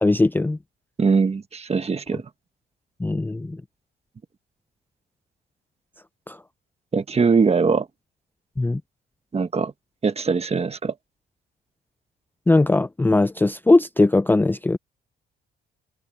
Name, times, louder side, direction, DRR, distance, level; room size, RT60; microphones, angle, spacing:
voice 1, 0.0-0.6 3.0-3.6 6.3-6.4 8.6-8.8 12.5-14.8, left 2 dB, 10° left, 0.5 m, -19 dB
voice 2, 1.0-2.2 6.9-7.9 9.3-9.7 10.0-10.9, right 5 dB, 30° right, 1.4 m, -21 dB
open air
cardioid pair, 90°, 20 cm